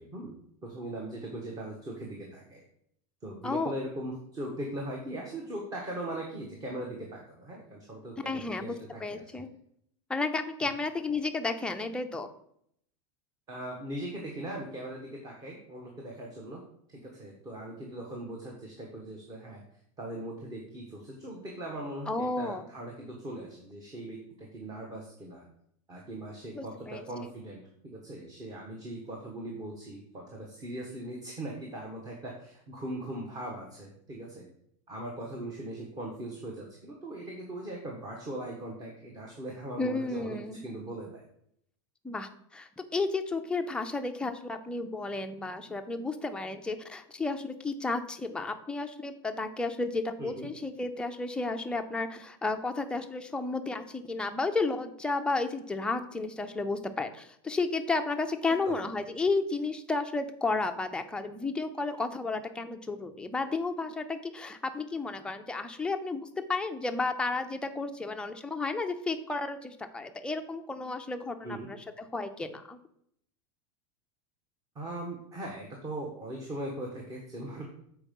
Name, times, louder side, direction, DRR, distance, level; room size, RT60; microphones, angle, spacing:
voice 1, 0.0-2.6 3.2-9.2 10.6-10.7 13.5-16.6 16.9-19.6 20.0-25.4 25.9-34.5 34.9-41.2 50.2-50.5 58.6-58.8 71.4-71.7 74.7-77.6, right 1 dB, 25° right, 0 dB, 1.4 m, -40 dB
voice 2, 8.3-8.7 9.0-9.5 10.1-12.3 22.1-22.6 26.5-27.0 39.8-40.6 42.0-72.8, left 3 dB, 5° left, 5 dB, 0.5 m, -32 dB
7.1 x 4.6 x 5.3 m, 0.71 s
supercardioid pair, 145°, 16 cm